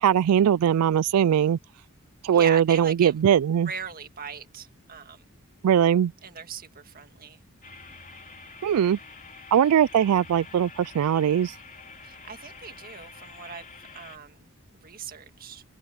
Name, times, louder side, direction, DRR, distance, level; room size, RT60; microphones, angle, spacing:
voice 1, 0.0-1.6 2.2-3.7 5.6-6.1 8.6-9.0 9.5-11.6, right 9 dB, 90° right, 0.3 m, -21 dB
voice 2, 2.3-3.1 3.7-5.2 6.2-7.4 12.0-13.7 13.9-14.5 14.7-15.6, right 6 dB, 40° right, 1.9 m, -39 dB
sound 1, 7.6-14.2, left 4 dB, 35° left, 3.3 m, -47 dB
head